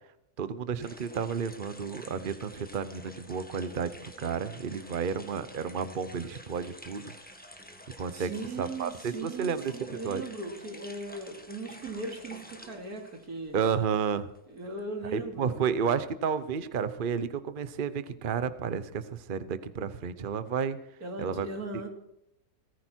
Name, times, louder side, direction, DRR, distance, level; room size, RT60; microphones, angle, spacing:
voice 1, 0.4-7.1 8.0-8.3 8.6-10.2 13.5-14.3 15.1-20.8 21.2-21.5, right 6 dB, 40° right, 13 dB, 0.9 m, -31 dB
sound 1, 0.8-14.0 14.3-15.5, left 1 dB, 5° left, 1.6 m, -49 dB
voice 2, 8.1-13.5 14.5-15.6 21.0-21.9, right 2 dB, 85° right, 3 dB, 3.2 m, -38 dB
18.5 x 14.5 x 4.5 m, 0.80 s
omnidirectional pair, 1.5 m